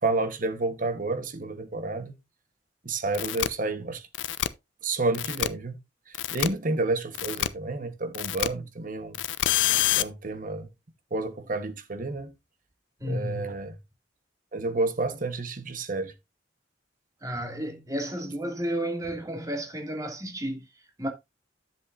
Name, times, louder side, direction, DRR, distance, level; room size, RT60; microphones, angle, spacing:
voice 1, 0.0-2.1 2.8-4.1 4.8-5.8 6.1-9.2 9.9-10.7 11.1-12.3 13.0-13.8 14.5-16.1, right 2 dB, 45° right, 1.3 m, -30 dB
sound 1, 3.1-3.5 4.1-4.5 5.1-5.5 6.1-6.5 7.1-7.5 8.1-8.5 9.1-10.0, left 12 dB, 80° left, 0.5 m, -26 dB
voice 2, 13.0-13.4 17.2-20.6 21.0-21.1, right 1 dB, 20° right, 2.6 m, -32 dB
11.0 x 7.4 x 2.7 m
head